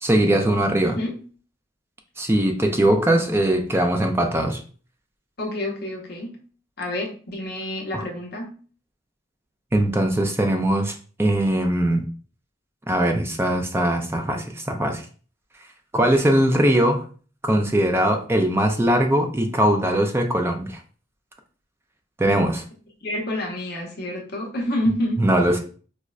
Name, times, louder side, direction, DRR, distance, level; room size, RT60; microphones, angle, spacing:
voice 1, 0.0-1.0 2.2-4.6 7.9-8.1 9.7-12.1 12.9-15.0 15.9-17.0 17.4-20.8 22.2-22.6 25.2-25.6, right 1 dB, 15° right, 4 dB, 0.4 m, -21 dB
voice 2, 5.4-6.4 6.8-8.5 23.0-25.2, left 1 dB, 55° left, 0 dB, 0.7 m, -28 dB
4.7 x 2.1 x 2.3 m, 0.40 s
head